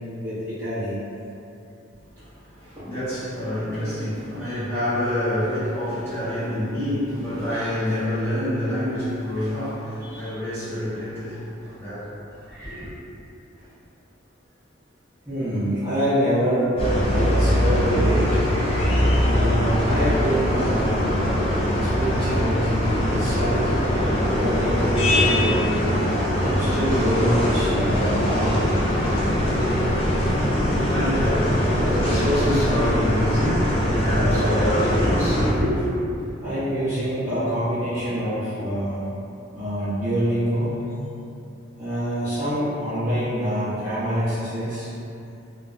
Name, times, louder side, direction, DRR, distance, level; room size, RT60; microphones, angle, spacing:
voice 1, 0.2-1.0 2.8-2.9 4.4-4.6 10.0-10.3 15.3-18.6 19.2-23.8 24.3-25.9 26.3-28.8 36.4-39.0 39.5-40.8 41.8-44.9, equal, 15° right, -18 dB, 0.8 m, -26 dB
voice 2, 2.1-12.2 12.4-12.9 30.9-35.9, left 1 dB, 15° left, -16 dB, 1.1 m, -27 dB
sound 1, 16.8-35.5, equal, 30° left, 0.3 m, -22 dB
2.6 x 2.2 x 2.4 m, 2.8 s
head